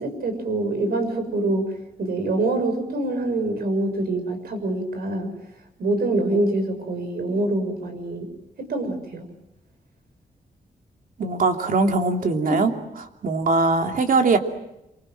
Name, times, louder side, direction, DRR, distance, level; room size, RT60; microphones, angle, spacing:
voice 1, 0.0-5.3 5.8-8.3 8.6-9.3 12.4-12.6, right 2 dB, 90° right, 7 dB, 6.4 m, -25 dB
voice 2, 11.2-12.7 13.2-14.4, right 3 dB, 65° right, 4 dB, 3.0 m, -21 dB
27.0 x 25.0 x 7.8 m, 0.90 s
wide cardioid pair, 135°, 15 cm